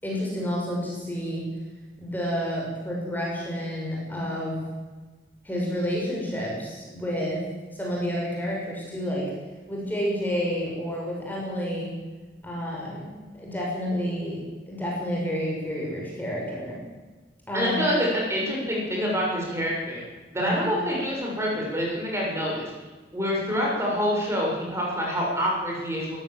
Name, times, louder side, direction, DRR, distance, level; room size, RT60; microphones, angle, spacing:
voice 1, 0.0-1.4 2.0-4.6 5.4-7.4 7.7-9.3 9.7-11.9 12.4-14.4 14.7-16.8 17.5-17.8 20.4-20.5, equal, 10° left, -3 dB, 6.3 m, -30 dB
voice 2, 17.5-20.0 20.3-22.7 23.1-26.2, equal, 15° right, -3 dB, 6.9 m, -26 dB
23.5 x 15.0 x 7.9 m, 1.3 s
head